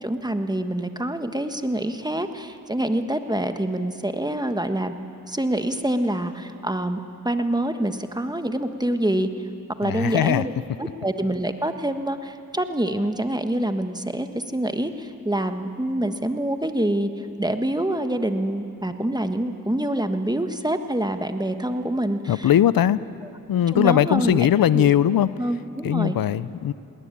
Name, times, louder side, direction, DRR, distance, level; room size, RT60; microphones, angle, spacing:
voice 1, 0.0-4.9 5.3-9.3 9.8-10.5 10.8-22.5 23.7-24.5 24.7-24.9 25.4-26.1, right 1 dB, 10° right, 8 dB, 1.4 m, -26 dB
voice 2, 9.8-10.4 22.3-23.0 23.5-25.3 25.8-26.7, left 10 dB, 85° left, 17 dB, 0.5 m, -20 dB
19.5 x 18.5 x 9.9 m, 2.7 s
cardioid pair, 45°, 34 cm